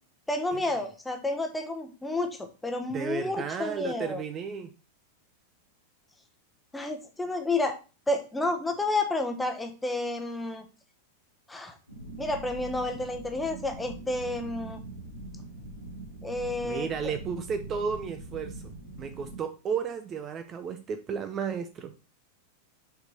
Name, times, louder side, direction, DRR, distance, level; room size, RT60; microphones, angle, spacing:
voice 1, 0.3-4.2 6.7-7.8 8.1-10.6 11.5-11.8 12.2-14.8 16.2-16.9, left 2 dB, 10° left, 5 dB, 1.1 m, -30 dB
voice 2, 2.9-4.7 16.6-21.9, right 6 dB, 25° right, 9 dB, 0.5 m, -33 dB
sound 1, 11.9-19.4, right 2 dB, 85° left, 2.1 m, -42 dB
6.6 x 4.4 x 4.0 m, 0.33 s
figure-of-eight pair, 90°, 0 cm